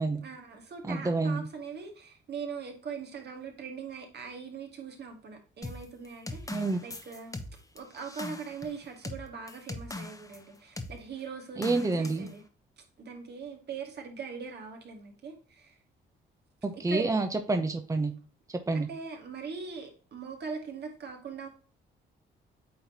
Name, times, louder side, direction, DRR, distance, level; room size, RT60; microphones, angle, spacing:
voice 1, 0.2-7.4 7.7-12.4 12.8-15.8 16.7-17.1 18.7-21.5, right 5 dB, 55° right, 2 dB, 2.2 m, -41 dB
voice 2, 0.8-1.4 6.5-6.8 11.6-12.3 16.6-18.1 18.5-18.9, right 3 dB, 15° right, 7 dB, 0.9 m, -28 dB
sound 1, 5.6-10.4 10.8-11.0 11.6-12.3, left 2 dB, 15° left, 1.0 m, -40 dB
8.6 x 4.0 x 2.9 m, 0.38 s
cardioid pair, 90°, 20 cm